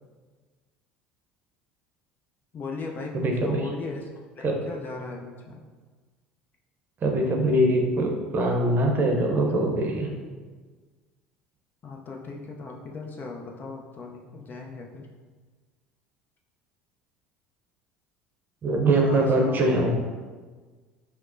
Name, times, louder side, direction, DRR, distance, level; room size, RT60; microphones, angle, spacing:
voice 1, 2.5-4.0 4.4-5.6 11.8-15.1 19.0-19.9, left 3 dB, 35° left, 0 dB, 0.6 m, -37 dB
voice 2, 3.1-3.6 4.4-4.5 7.0-10.2 18.6-19.9, right 1 dB, 40° right, 1 dB, 0.7 m, -23 dB
5.9 x 2.1 x 2.6 m, 1.4 s
hypercardioid pair, 65°, 5 cm